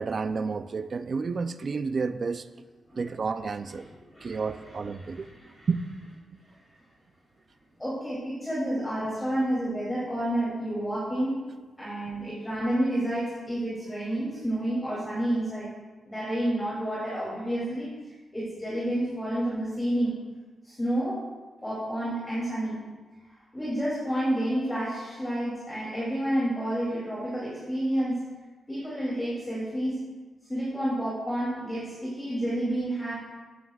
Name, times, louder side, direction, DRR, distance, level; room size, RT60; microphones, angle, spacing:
voice 1, 0.0-2.4 3.0-3.9 4.2-5.3 5.7-5.8, right 4 dB, 40° right, 10 dB, 0.4 m, -30 dB
voice 2, 2.9-6.0 6.5-6.6 7.8-11.4 11.8-15.7 16.1-20.2 20.6-21.2 21.6-22.8 23.5-28.3 28.7-30.0 30.4-33.1, right 1 dB, 10° left, -8 dB, 2.8 m, -30 dB
15.0 x 9.5 x 2.4 m, 1.4 s
wide cardioid pair, 155°, 0 cm